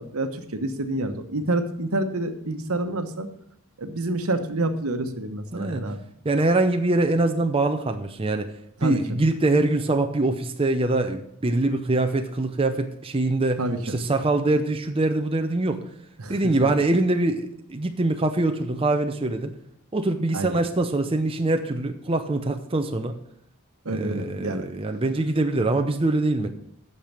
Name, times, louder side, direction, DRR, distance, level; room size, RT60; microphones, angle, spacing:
voice 1, 0.0-3.3 3.8-6.0 8.8-9.0 13.6-14.0 16.2-16.7 20.3-20.5 23.8-24.7, right 2 dB, 75° right, 8 dB, 1.1 m, -28 dB
voice 2, 5.5-5.8 6.2-8.5 8.8-13.6 13.9-15.8 16.3-19.5 19.9-23.1 23.9-26.5, right 2 dB, 25° right, 6 dB, 0.6 m, -23 dB
8.8 x 6.7 x 7.4 m, 0.71 s
head